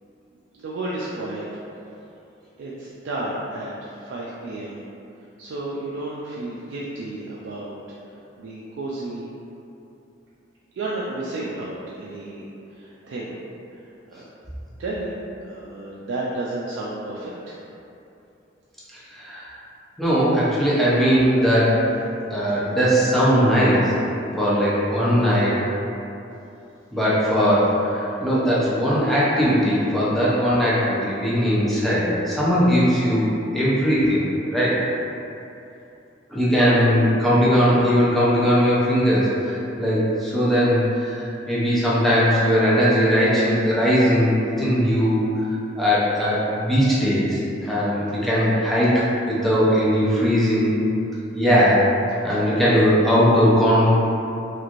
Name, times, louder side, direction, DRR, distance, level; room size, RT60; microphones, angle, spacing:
voice 1, 0.5-1.5 2.6-4.8 5.4-7.8 8.4-9.3 10.8-13.4 14.1-14.2 14.8-15.1 15.4-17.6, right 2 dB, 75° right, -6 dB, 0.3 m, -32 dB
voice 2, 19.1-19.5 20.0-21.9 22.3-23.9 24.4-25.6 26.9-33.3 33.5-34.2 34.5-34.8 36.3-45.2 45.8-50.7 51.3-52.0 52.2-53.9, equal, ahead, -9 dB, 0.6 m, -19 dB
3.0 x 2.5 x 2.4 m, 2.8 s
head